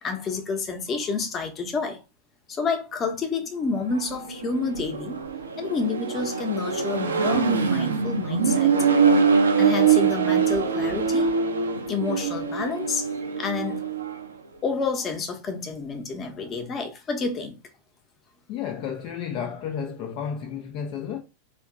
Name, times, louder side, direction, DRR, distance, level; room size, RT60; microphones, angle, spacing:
voice 1, 0.0-2.0 2.5-5.2 5.6-8.7 9.6-11.3 11.9-13.1 13.4-13.8 14.6-17.6, left 4 dB, 25° left, 0.9 m, -29 dB
Accelerating revving vroom, 3.8-14.3, right 6 dB, 70° right, 0.5 m, -23 dB
voice 2, 18.5-21.2, left 7 dB, 40° left, 0.5 m, -32 dB
2.9 x 2.5 x 3.6 m
figure-of-eight pair, 90°, 0 cm